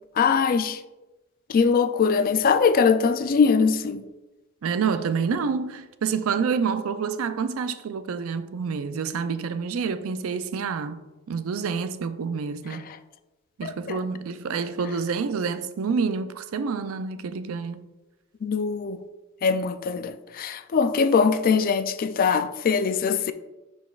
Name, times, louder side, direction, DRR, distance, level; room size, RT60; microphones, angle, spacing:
voice 1, 0.2-0.8 1.5-4.0 13.6-14.0 18.4-19.0 19.4-23.3, left 5 dB, 45° left, 0.3 m, -22 dB
voice 2, 4.6-12.9 13.6-17.8, right 5 dB, 80° right, 0.4 m, -28 dB
9.9 x 4.1 x 2.4 m
head